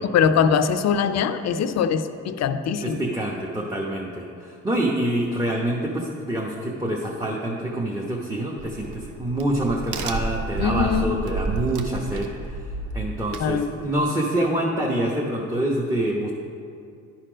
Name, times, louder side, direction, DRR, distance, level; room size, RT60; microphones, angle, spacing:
voice 1, 0.1-3.0 10.6-11.2 13.4-13.7, left 7 dB, 60° left, 10 dB, 0.5 m, -22 dB
voice 2, 2.8-12.7 12.9-16.3, right 1 dB, 10° right, -3 dB, 1.0 m, -26 dB
Crack, 8.6-14.0, right 3 dB, 80° right, 0.7 m, -31 dB
11.0 x 4.4 x 5.0 m, 2.5 s
cardioid pair, 90°, 30 cm